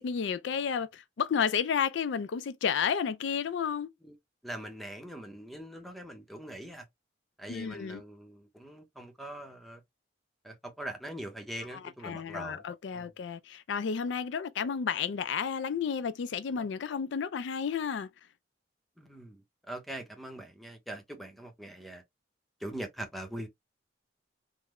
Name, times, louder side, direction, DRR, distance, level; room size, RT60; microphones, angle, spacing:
voice 1, 0.0-3.9 7.5-8.0 11.7-18.1, left 7 dB, 70° left, 0.4 m, -32 dB
voice 2, 4.4-6.9 7.4-9.8 10.4-12.6 12.9-13.1 19.0-22.0 22.6-23.5, right 1 dB, ahead, 0.7 m, -42 dB
3.6 x 2.1 x 3.1 m
head